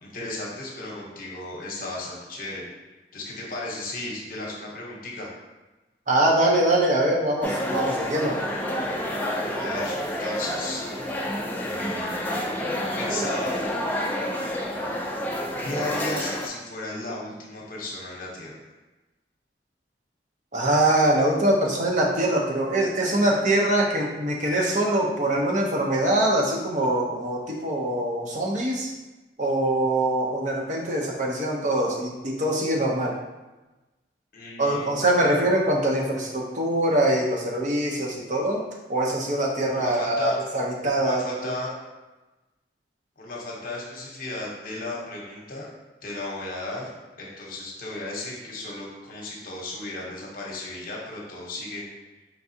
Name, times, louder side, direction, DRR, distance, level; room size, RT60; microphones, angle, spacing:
voice 1, 0.0-2.6 3.1-5.3 9.5-10.9 11.6-12.4 12.9-13.7 15.6-18.5 34.3-34.8 39.7-40.4 40.9-41.7 43.2-45.7 46.0-46.9 47.2-51.8, left 2 dB, 50° left, -3 dB, 0.9 m, -35 dB
voice 2, 6.1-8.4 20.5-28.9 29.4-33.2 34.6-38.6 38.9-41.5, right 1 dB, 45° right, -2 dB, 0.8 m, -23 dB
sound 1, 7.4-16.5, equal, 10° left, 0.4 m, -29 dB
4.6 x 3.5 x 2.7 m, 1.1 s
head